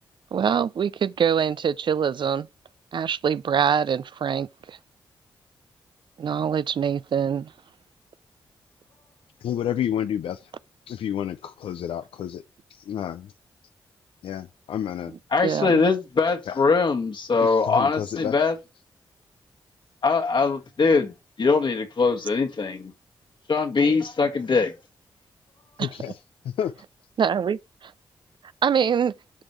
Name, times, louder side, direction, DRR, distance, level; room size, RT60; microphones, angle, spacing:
voice 1, 0.3-2.5 2.9-4.8 6.2-7.5 15.4-15.7 25.8-25.9 27.2-27.9 28.6-29.1, right 7 dB, 55° right, 0.4 m, -24 dB
voice 2, 9.4-10.5 10.9-12.4 12.7-13.3 14.2-15.1 16.5-16.6 17.4-18.3 25.8-26.2 26.4-26.7, left 9 dB, 75° left, 0.4 m, -30 dB
voice 3, 15.3-18.5 20.0-22.9 23.5-24.7, left 4 dB, 55° left, 1.6 m, -22 dB
7.4 x 5.2 x 3.2 m
supercardioid pair, 40°, 10 cm